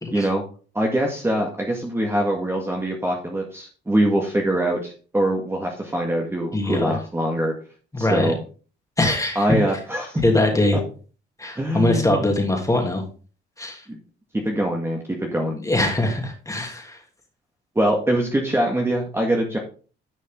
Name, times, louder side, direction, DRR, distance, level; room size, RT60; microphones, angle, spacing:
voice 1, 0.1-0.4 0.7-7.5 8.0-8.4 9.4-10.2 10.7-10.8 11.6-12.2 13.9-14.0 14.3-15.6 17.8-19.6, right 1 dB, 10° right, 0 dB, 1.8 m, -23 dB
voice 2, 6.5-7.0 7.9-8.3 9.0-9.5 10.2-10.8 11.4-13.0 13.6-13.8 15.6-17.0, left 1 dB, 15° left, 2 dB, 2.9 m, -22 dB
10.5 x 5.3 x 3.8 m, 0.38 s
cardioid pair, 90°, 20 cm